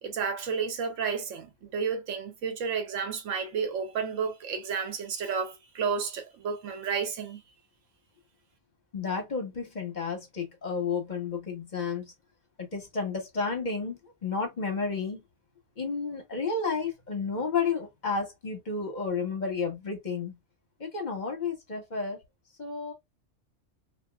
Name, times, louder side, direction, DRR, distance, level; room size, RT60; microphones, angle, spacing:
voice 1, 0.0-7.4, right 6 dB, 85° right, 1.1 m, -31 dB
voice 2, 8.9-12.1 12.6-15.2 15.8-20.3 20.8-22.2 22.6-22.9, left 5 dB, 40° left, 0.9 m, -31 dB
2.9 x 2.4 x 2.2 m
omnidirectional pair, 1.3 m